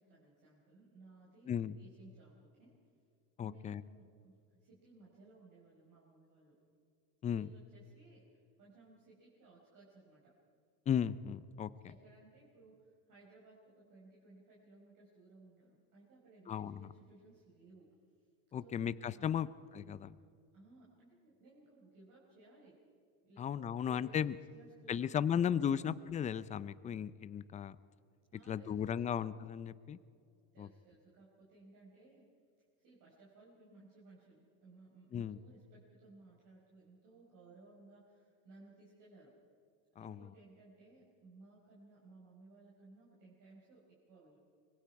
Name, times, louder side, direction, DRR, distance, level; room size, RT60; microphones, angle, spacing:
voice 1, 0.0-2.8 3.4-6.6 7.3-8.3 8.6-10.3 11.8-18.0 18.6-18.8 19.2-19.5 20.2-20.3 20.5-22.9 23.2-25.3 25.6-25.9 28.3-29.1 30.5-32.3 32.8-39.4 39.9-44.4, right 2 dB, 45° right, -4 dB, 5.1 m, -60 dB
voice 2, 3.4-3.8 7.2-7.5 10.9-11.7 16.5-16.9 18.5-19.5 19.7-20.2 23.4-24.4 24.9-27.8 28.5-30.0 30.6-30.7 35.1-35.4 40.0-40.3, left 8 dB, 20° left, 16 dB, 0.4 m, -35 dB
25.0 x 22.0 x 4.7 m, 2.4 s
supercardioid pair, 130°, 42 cm